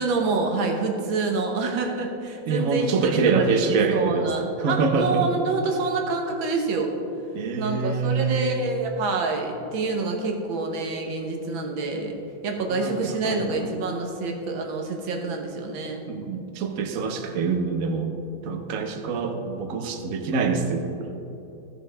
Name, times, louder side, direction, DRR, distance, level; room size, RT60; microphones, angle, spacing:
voice 1, 0.0-6.9 7.6-12.2 12.4-16.0, right 3 dB, 85° right, 2 dB, 1.9 m, -27 dB
voice 2, 2.5-4.3 4.6-5.2 7.3-8.6 12.7-13.6 16.1-18.1 18.4-21.1, right 4 dB, 55° right, 5 dB, 1.0 m, -25 dB
15.5 x 6.4 x 3.4 m, 2.9 s
omnidirectional pair, 2.1 m